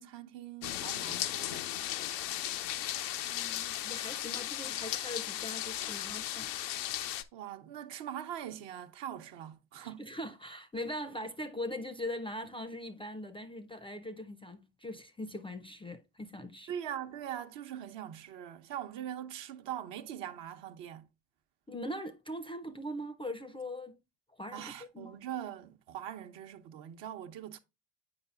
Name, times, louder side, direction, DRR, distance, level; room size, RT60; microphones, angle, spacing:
voice 1, 0.0-1.7 7.3-10.1 16.7-21.1 24.5-27.6, right 10 dB, 60° right, 0.9 m, -42 dB
sound 1, 0.6-7.2, left 13 dB, 90° left, 0.6 m, -36 dB
voice 2, 3.2-6.5 9.8-16.7 21.7-24.0 24.4-25.2, left 1 dB, 10° left, 0.4 m, -41 dB
8.7 x 4.9 x 2.3 m
hypercardioid pair, 65°, 48 cm